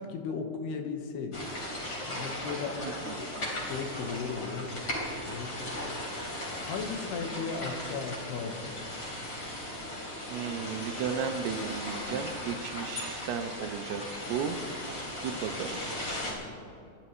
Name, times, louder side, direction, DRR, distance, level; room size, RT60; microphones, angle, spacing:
voice 1, 0.0-1.5 2.0-2.8 3.2-3.3 3.6-4.8 5.3-5.7 6.6-8.8, left 5 dB, 75° left, 4 dB, 3.2 m, -36 dB
sound 1, 1.3-16.3, left 1 dB, 30° left, 3.8 m, -37 dB
voice 2, 2.8-3.4 10.3-14.0 14.3-14.6 15.2-15.8, right 7 dB, 80° right, 8 dB, 2.7 m, -34 dB
28.0 x 12.5 x 3.1 m, 2.5 s
omnidirectional pair, 4.8 m